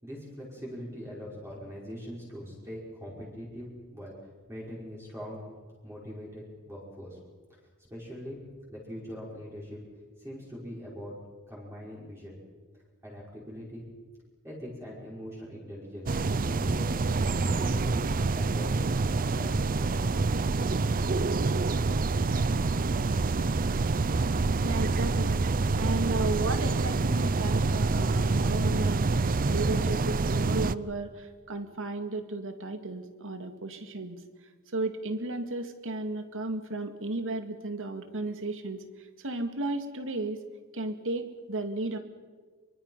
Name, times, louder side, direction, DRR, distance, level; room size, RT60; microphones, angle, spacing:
voice 1, 0.0-4.1 4.5-5.4 5.8-7.2 7.9-8.4 8.7-9.8 10.2-11.1 11.5-12.4 13.0-13.8 14.4-16.2 16.4-17.0 17.4-18.8 19.3-20.5, equal, 10° right, -5 dB, 5.5 m, -41 dB
sound 1, 16.1-30.7, right 3 dB, 40° right, 0.6 m, -27 dB
voice 2, 24.6-25.4 25.8-29.1 29.5-34.2 34.7-40.4 40.7-42.0, right 2 dB, 60° right, 7 dB, 2.3 m, -34 dB
26.0 x 24.0 x 5.7 m, 1.5 s
head